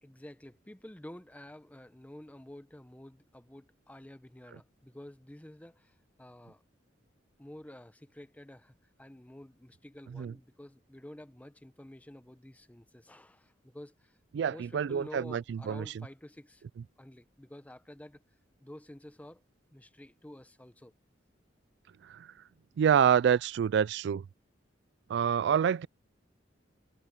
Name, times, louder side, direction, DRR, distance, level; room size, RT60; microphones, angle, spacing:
voice 1, 0.0-5.9 6.2-6.6 7.4-8.7 9.0-14.1 14.5-16.6 17.0-18.2 18.6-19.4 19.7-20.9, left 1 dB, 10° left, 0.7 m, -50 dB
voice 2, 14.3-16.1 16.8-16.9 22.0-22.3 22.8-24.2 25.1-25.9, right 8 dB, 65° right, 0.3 m, -27 dB
head